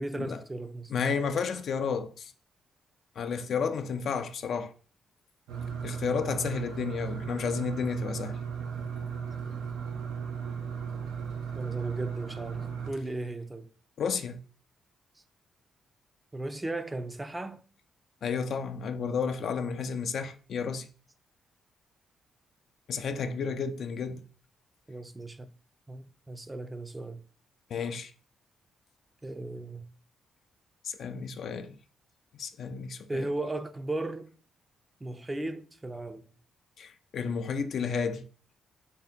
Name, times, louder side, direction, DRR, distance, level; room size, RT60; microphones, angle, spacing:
voice 1, 0.0-0.9 11.5-13.7 16.3-17.6 23.4-23.6 24.9-25.5 25.9-27.2 29.2-29.8 33.1-34.3 35.0-36.3, right 2 dB, 20° right, 0.4 m, -36 dB
voice 2, 0.9-2.3 3.2-4.7 5.8-8.4 14.0-14.4 18.2-20.9 22.9-24.2 27.7-28.1 30.8-31.7 32.4-33.3 36.8-38.2, left 6 dB, 65° left, 0.4 m, -32 dB
sound 1, 5.5-12.9, right 6 dB, 90° right, 0.5 m, -36 dB
3.5 x 2.8 x 3.5 m
cardioid pair, 70°, 0 cm